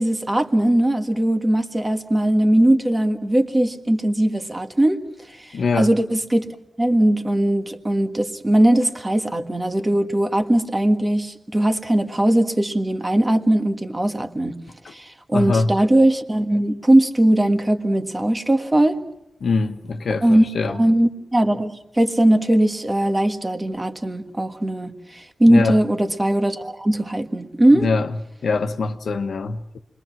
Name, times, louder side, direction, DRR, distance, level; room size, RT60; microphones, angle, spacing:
voice 1, 0.0-5.0 5.4-6.5 6.8-14.6 14.9-19.0 20.2-27.9, right 1 dB, 15° right, 1.7 m, -19 dB
voice 2, 5.5-5.9 14.8-14.9 15.3-15.7 19.4-20.8 25.5-25.8 27.8-28.1 28.4-29.8, left 4 dB, 75° left, 1.2 m, -23 dB
29.0 x 22.5 x 6.1 m
wide cardioid pair, 160°, 0 cm